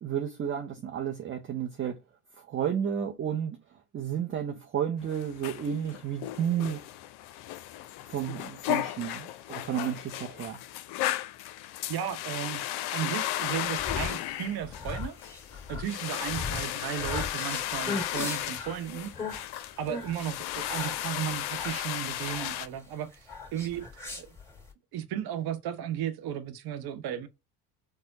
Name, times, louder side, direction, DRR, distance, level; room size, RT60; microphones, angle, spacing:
voice 1, 0.0-2.0 2.4-6.9 8.1-10.6, right 9 dB, 30° right, 0.6 m, -32 dB
sound 1, 5.0-22.7, left 13 dB, 65° left, 0.5 m, -35 dB
voice 2, 11.9-12.6 12.9-15.2 15.7-19.5 19.8-24.4 24.9-27.3, right 10 dB, 55° right, 0.8 m, -35 dB
sound 2, 13.5-24.7, left 3 dB, 5° left, 2.0 m, -38 dB
4.3 x 2.1 x 2.7 m
supercardioid pair, 80°, 43 cm